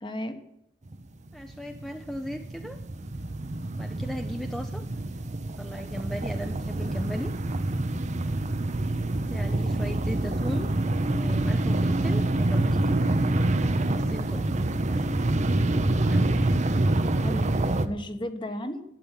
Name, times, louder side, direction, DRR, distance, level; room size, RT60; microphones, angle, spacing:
voice 1, 0.0-0.4 17.2-18.8, left 1 dB, 25° left, 8 dB, 1.3 m, -34 dB
sound 1, 0.9-1.0 1.3-17.9, right 2 dB, 40° right, 0.8 m, -26 dB
voice 2, 1.3-2.8 3.8-4.8 5.6-7.3 9.1-10.7 11.1-13.0 13.8-14.5 14.9-15.1 16.0-16.3, equal, ahead, 5 dB, 0.7 m, -37 dB
12.0 x 8.7 x 9.0 m, 0.83 s
head